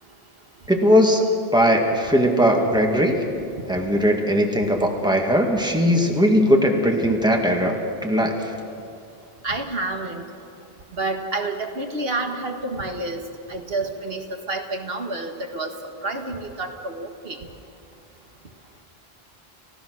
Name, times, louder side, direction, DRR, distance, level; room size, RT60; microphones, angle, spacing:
voice 1, 0.7-1.3 1.5-3.2 3.7-7.8 8.0-8.5, equal, 5° right, 1 dB, 2.1 m, -19 dB
voice 2, 9.4-10.2 10.9-13.2 13.5-15.7 16.0-17.4, right 2 dB, 70° right, 4 dB, 1.7 m, -29 dB
30.0 x 16.0 x 6.4 m, 2.6 s
omnidirectional pair, 1.0 m